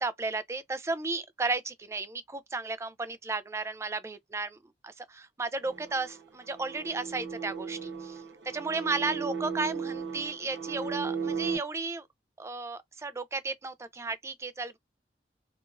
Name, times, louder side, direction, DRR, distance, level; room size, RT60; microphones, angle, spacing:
voice 1, 0.0-8.2 8.5-12.1 12.4-14.8, right 3 dB, 15° right, 0.3 m, -34 dB
sound 1, 5.6-11.6, right 6 dB, 85° right, 0.8 m, -36 dB
2.8 x 2.4 x 2.4 m
head